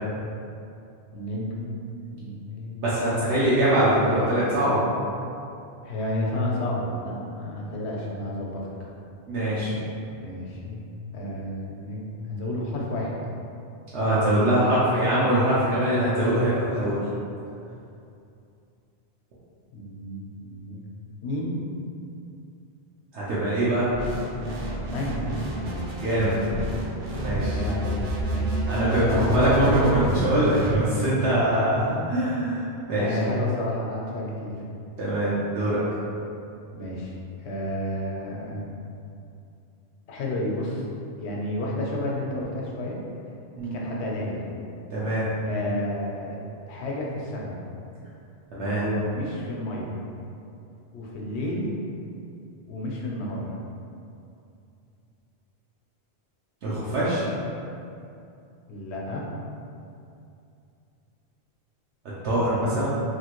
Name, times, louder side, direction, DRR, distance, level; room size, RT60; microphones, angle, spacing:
voice 1, 1.1-2.8 5.8-8.9 10.2-10.8 11.1-13.1 19.7-20.8 21.2-21.6 24.9-25.3 27.5-28.0 28.3-28.7 29.0-29.8 31.5-31.9 32.9-34.6 36.7-38.7 40.1-40.8 41.2-43.0 43.7-44.5 45.4-47.6 48.5-49.9 50.9-51.7 52.7-53.5 58.7-59.3, left 1 dB, 75° left, -3 dB, 0.9 m, -31 dB
voice 2, 2.8-4.8 9.3-9.7 13.9-17.0 23.1-23.9 26.0-26.5 27.2-27.6 28.7-33.1 35.0-35.8 43.6-44.0 44.9-45.3 48.5-48.9 56.6-57.3 62.2-62.9, right 1 dB, 85° right, -10 dB, 0.9 m, -23 dB
sound 1, 23.9-30.8, right 1 dB, 60° right, 0.6 m, -29 dB
3.1 x 2.4 x 2.9 m, 2.6 s
omnidirectional pair, 1.1 m